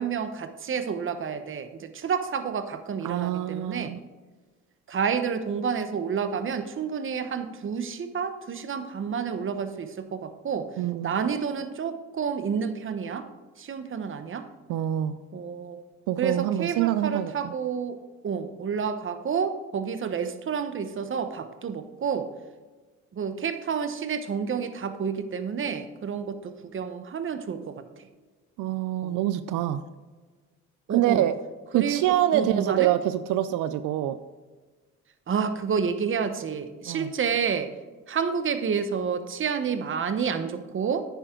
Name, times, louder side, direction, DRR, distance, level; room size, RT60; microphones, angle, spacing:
voice 1, 0.0-3.9 4.9-10.7 11.0-13.3 13.6-14.5 15.3-15.8 16.2-22.3 23.1-27.8 29.0-29.1 30.9-31.3 31.7-32.9 35.3-37.7 38.1-41.0, right 6 dB, 40° right, 10 dB, 0.9 m, -29 dB
voice 2, 3.0-4.0 10.8-11.2 14.7-15.2 16.1-17.5 28.6-29.8 30.9-31.3 31.7-34.2 36.9-37.1, right 12 dB, 90° right, 13 dB, 0.5 m, -25 dB
10.0 x 9.2 x 3.7 m, 1.3 s
cardioid pair, 90°, 30 cm